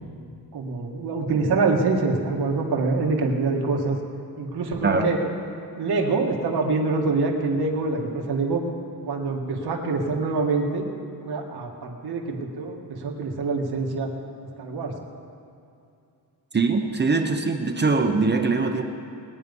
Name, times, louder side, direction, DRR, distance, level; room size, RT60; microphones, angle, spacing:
voice 1, 0.5-4.0 4.4-5.2 5.8-8.6 9.0-10.9 11.3-14.1 14.6-14.9, right 3 dB, 70° right, 1 dB, 1.9 m, -25 dB
voice 2, 16.5-18.8, right 4 dB, 25° right, 4 dB, 0.8 m, -22 dB
20.5 x 9.6 x 5.4 m, 2.6 s
wide cardioid pair, 160°, 40 cm